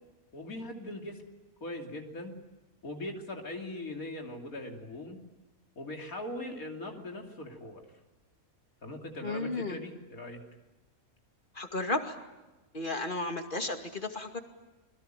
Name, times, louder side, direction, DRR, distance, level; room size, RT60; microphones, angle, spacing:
voice 1, 0.3-1.2 1.6-2.3 2.8-5.2 5.8-7.8 8.8-10.4, left 1 dB, 85° left, 3 dB, 3.4 m, -40 dB
voice 2, 9.2-9.8 11.5-12.2 12.7-14.4, left 2 dB, 35° left, 6 dB, 2.4 m, -33 dB
27.5 x 22.0 x 9.1 m, 1.1 s
omnidirectional pair, 1.4 m